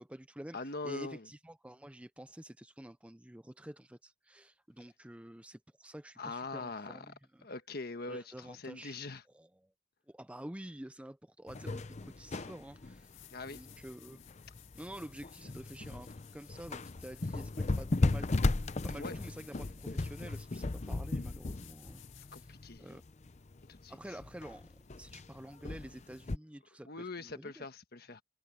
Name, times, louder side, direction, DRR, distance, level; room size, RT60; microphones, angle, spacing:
voice 1, 0.0-7.5 8.1-8.9 9.3-9.7 10.1-13.1 13.5-14.2 14.7-22.0 22.3-23.0 23.9-27.7, right 1 dB, 5° right, 0.6 m, -49 dB
voice 2, 0.5-1.3 6.2-7.0 7.4-9.2 13.3-13.6 18.9-19.1 22.3-23.0 23.6-24.0 26.9-28.2, left 3 dB, 55° left, 1.4 m, -42 dB
sound 1, 11.5-26.4, left 2 dB, 35° left, 0.6 m, -36 dB
sound 2, 12.9-22.7 25.5-25.6, left 14 dB, 90° left, 2.4 m, -58 dB
head